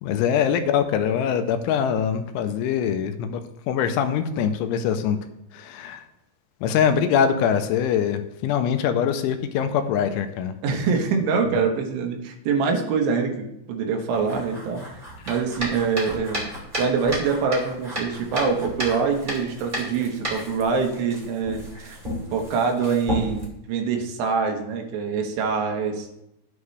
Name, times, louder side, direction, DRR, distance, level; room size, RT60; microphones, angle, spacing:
voice 1, 0.0-3.4 3.7-5.2 5.5-6.0 6.6-10.6, left 8 dB, 90° left, 8 dB, 3.1 m, -23 dB
voice 2, 10.6-14.8 15.3-16.5 16.8-22.0 22.3-26.1, right 5 dB, 80° right, 2 dB, 3.5 m, -24 dB
sound 1, 14.1-23.5, equal, 15° right, 1.7 m, -33 dB
11.0 x 9.5 x 3.3 m, 0.85 s
omnidirectional pair, 5.4 m